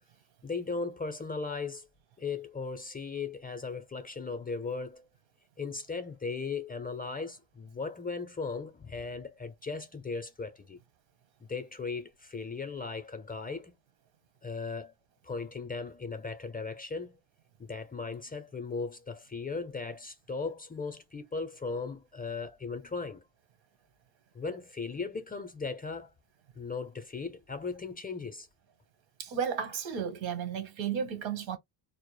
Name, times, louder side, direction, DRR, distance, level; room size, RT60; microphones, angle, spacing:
voice 1, 0.4-1.9 2.2-5.1 5.6-10.8 11.4-13.7 14.4-14.9 15.2-17.2 17.6-23.2 24.3-26.1 26.6-28.5, left 4 dB, 20° left, 0.5 m, -37 dB
voice 2, 29.2-31.6, right 7 dB, 75° right, 1.1 m, -33 dB
2.0 x 2.0 x 3.2 m
supercardioid pair, 70°, 46 cm